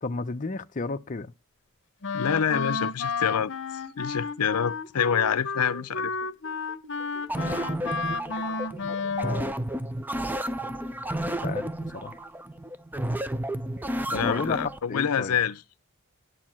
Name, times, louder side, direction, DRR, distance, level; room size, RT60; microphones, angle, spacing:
voice 1, 0.0-1.3 11.4-12.1 14.1-15.4, left 3 dB, 35° left, 0.6 m, -32 dB
Wind instrument woodwind instrument, 2.0-9.5, left 4 dB, 55° left, 0.9 m, -32 dB
voice 2, 2.1-6.1 14.1-15.6, left 7 dB, 85° left, 0.5 m, -27 dB
sound 1, 5.6-9.4, right 3 dB, 60° right, 3.0 m, -50 dB
sound 2, 7.3-14.8, right 1 dB, 10° right, 0.5 m, -31 dB
11.5 x 4.8 x 7.3 m
head